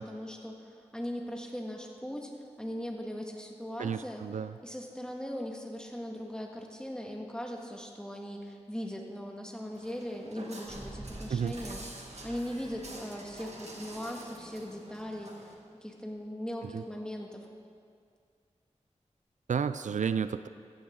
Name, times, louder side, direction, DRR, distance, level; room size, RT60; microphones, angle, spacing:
voice 1, 0.0-2.3 2.6-4.2 4.6-11.8 12.2-15.5 15.8-17.5, equal, 5° left, 0 dB, 2.0 m, -39 dB
voice 2, 3.8-4.5 11.3-11.5 16.7-16.8 19.5-20.5, right 7 dB, 85° right, 12 dB, 0.4 m, -31 dB
Walk footsteps, 9.7-15.5, right 2 dB, 60° right, 2.0 m, -48 dB
sound 1, 10.6-15.2 15.5-15.6, right 1 dB, 15° right, 0.9 m, -49 dB
15.5 x 15.0 x 3.9 m, 2.2 s
wide cardioid pair, 65°, 12 cm